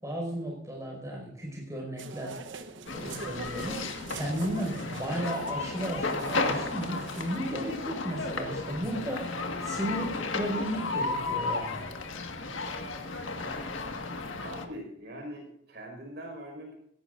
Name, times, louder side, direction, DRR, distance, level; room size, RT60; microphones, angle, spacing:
voice 1, 0.0-2.4 2.9-3.8 4.1-9.3 9.6-11.8, equal, 15° right, -1 dB, 5.4 m, -34 dB
sound 1, 2.0-7.4, right 4 dB, 80° right, 1.1 m, -43 dB
sound 2, 2.9-14.7, left 3 dB, 85° left, 1.7 m, -34 dB
voice 2, 14.4-16.7, equal, 55° right, 1 dB, 5.2 m, -42 dB
18.0 x 17.0 x 2.6 m, 0.74 s
head